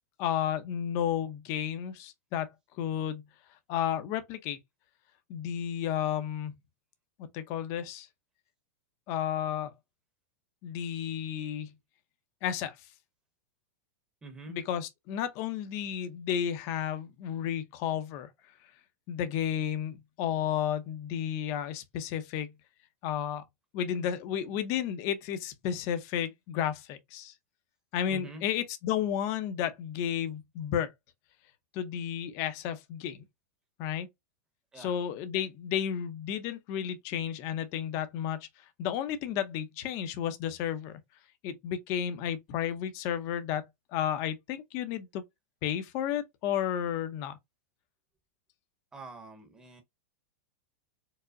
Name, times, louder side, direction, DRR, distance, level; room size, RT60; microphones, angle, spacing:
voice 1, 0.2-2.5 2.8-3.2 3.7-4.6 5.3-6.5 7.3-8.1 9.1-9.7 10.6-11.7 12.4-12.8 14.5-18.3 19.1-22.5 23.0-23.4 23.7-27.3 27.9-30.9 31.7-33.2 33.8-34.1 34.8-38.4 38.8-41.0 41.4-43.6 43.9-45.2 45.6-47.4, left 9 dB, 35° left, 0.7 m, -32 dB
voice 2, 14.2-14.6 28.1-28.4 34.7-35.0 48.9-49.8, right 2 dB, 10° right, 0.9 m, -45 dB
4.7 x 2.1 x 2.5 m
supercardioid pair, 160°, 8 cm